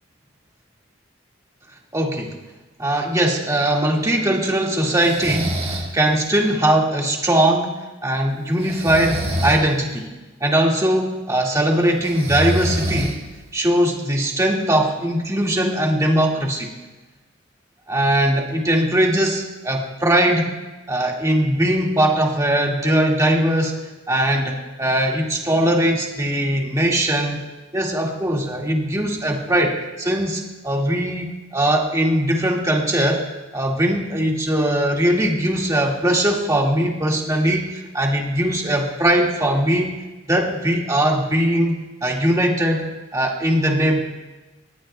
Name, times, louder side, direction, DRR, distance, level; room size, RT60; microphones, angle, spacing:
voice 1, 1.9-2.4 2.8-5.5 5.9-7.8 8.0-10.1 10.4-13.2 13.5-16.7 17.9-20.5 20.9-23.8 24.1-27.4 27.7-33.2 33.5-39.9 40.3-41.7 42.0-44.0, right 1 dB, 15° right, -1 dB, 2.0 m, -20 dB
Breathing, 5.0-5.9 8.6-9.6 12.0-13.4, equal, 35° right, 2.1 m, -25 dB
19.5 x 18.5 x 2.3 m, 1.1 s
head